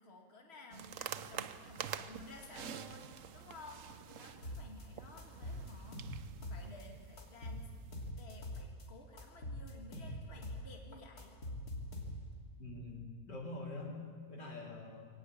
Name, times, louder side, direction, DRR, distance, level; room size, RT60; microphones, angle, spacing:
voice 1, 0.0-7.7 8.1-11.4, left 3 dB, 40° left, 1 dB, 2.6 m, -55 dB
sound 1, 0.7-8.1, right 8 dB, 60° right, 1.0 m, -48 dB
sound 2, 4.4-4.8 5.2-6.8 7.2-8.8 9.2-10.7 10.9-12.4, left 1 dB, 60° left, 3.7 m, -44 dB
voice 2, 12.6-14.0 14.3-15.1, left 2 dB, 90° left, -3 dB, 5.0 m, -45 dB
23.0 x 18.0 x 8.5 m, 2.1 s
omnidirectional pair, 1.8 m